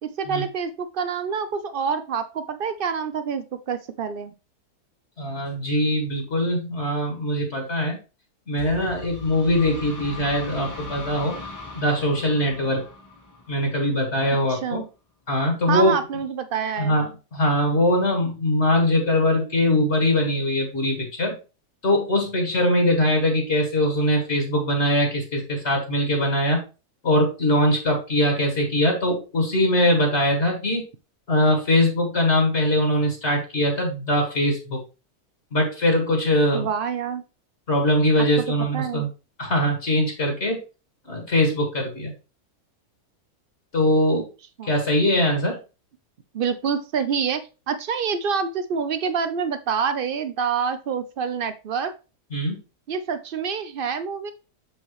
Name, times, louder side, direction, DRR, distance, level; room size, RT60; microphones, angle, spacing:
voice 1, 0.0-4.3 14.5-14.9 15.7-16.9 36.5-37.2 38.2-38.3 38.7-39.0 44.1-44.2 44.6-44.7 46.3-51.9 52.9-54.3, right 6 dB, 65° right, 11 dB, 0.5 m, -27 dB
voice 2, 5.2-8.0 8.5-11.4 11.8-12.8 13.5-14.8 15.3-15.9 16.8-21.4 21.8-26.6 27.0-30.8 31.3-34.8 35.5-36.7 37.7-39.1 39.4-40.6 41.1-42.1 43.7-44.3 44.6-45.6 52.3-52.6, left 1 dB, 45° left, 1 dB, 2.0 m, -22 dB
sound 1, 8.6-14.2, left 3 dB, 15° left, 0.6 m, -39 dB
7.0 x 5.4 x 3.1 m, 0.31 s
omnidirectional pair, 1.6 m